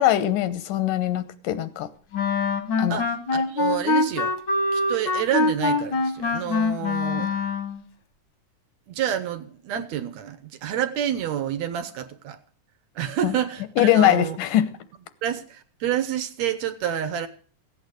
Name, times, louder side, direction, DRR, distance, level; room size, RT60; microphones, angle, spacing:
voice 1, 0.0-1.9 2.8-3.0 7.2-7.3 13.2-13.3 13.8-14.7, left 12 dB, 90° left, 2.6 m, -21 dB
Wind instrument woodwind instrument, 2.1-7.8, left 3 dB, 60° left, 1.2 m, -24 dB
voice 2, 2.9-4.4 4.7-7.3 8.9-12.4 13.0-14.4 15.2-17.3, right 10 dB, 70° right, 1.8 m, -28 dB
15.5 x 8.8 x 6.5 m
omnidirectional pair, 3.7 m